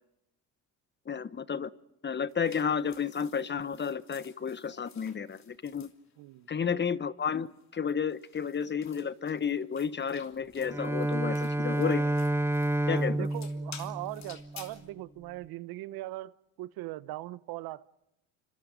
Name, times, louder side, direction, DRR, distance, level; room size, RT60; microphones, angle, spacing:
voice 1, 1.1-1.7 2.0-5.9 6.5-12.1 12.9-13.3, left 7 dB, 30° left, 1.1 m, -32 dB
sound 1, 2.3-6.6 7.3-14.9, left 7 dB, 45° left, 3.2 m, -54 dB
voice 2, 6.2-6.5 13.1-17.8, right 17 dB, 70° right, 1.1 m, -40 dB
Bowed string instrument, 10.6-14.7, right 1 dB, 5° right, 1.1 m, -30 dB
29.0 x 25.5 x 5.3 m
supercardioid pair, 85°, 38 cm